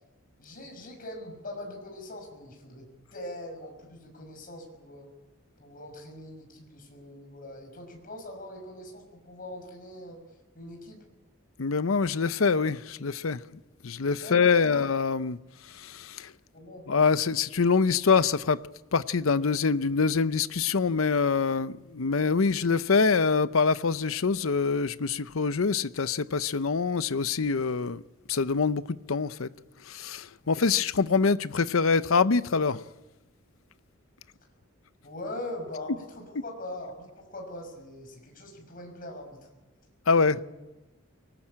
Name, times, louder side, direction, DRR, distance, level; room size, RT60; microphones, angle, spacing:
voice 1, 0.4-5.1 5.6-10.2 10.5-11.0 14.2-14.8 16.5-16.9 30.4-30.8 35.0-39.5 40.3-40.5, left 1 dB, 45° left, 6.1 m, -42 dB
voice 2, 11.6-13.4 13.8-15.4 15.7-16.3 16.9-18.6 18.9-28.0 28.3-29.5 29.9-32.8 40.1-40.4, left 5 dB, 80° left, 0.7 m, -25 dB
23.5 x 19.5 x 8.8 m
head